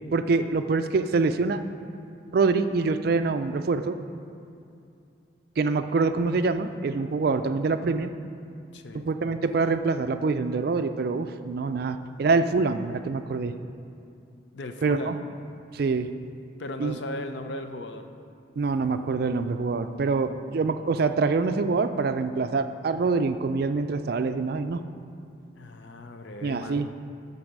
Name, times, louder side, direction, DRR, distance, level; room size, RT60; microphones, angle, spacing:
voice 1, 0.1-1.6 2.3-4.0 5.6-8.1 8.9-13.5 14.8-15.1 15.7-16.1 16.8-17.0 18.6-24.8 26.4-26.9, right 4 dB, 50° right, 9 dB, 0.3 m, -25 dB
voice 2, 8.7-9.1 14.5-15.2 16.6-18.1 25.6-26.9, left 1 dB, 65° left, 7 dB, 0.6 m, -36 dB
11.5 x 4.1 x 6.0 m, 2.6 s
head